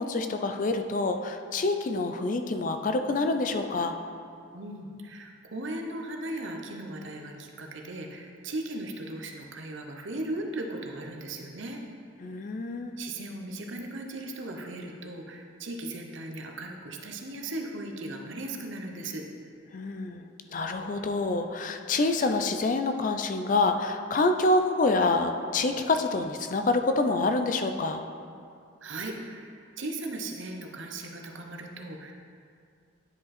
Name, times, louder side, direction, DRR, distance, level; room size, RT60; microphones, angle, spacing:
voice 1, 0.0-4.0 12.2-13.0 19.7-28.0, left 3 dB, 40° left, 7 dB, 0.4 m, -27 dB
voice 2, 4.5-11.8 13.0-19.3 28.8-32.1, right 2 dB, 65° right, 3 dB, 0.8 m, -37 dB
9.6 x 5.2 x 4.2 m, 2.3 s
head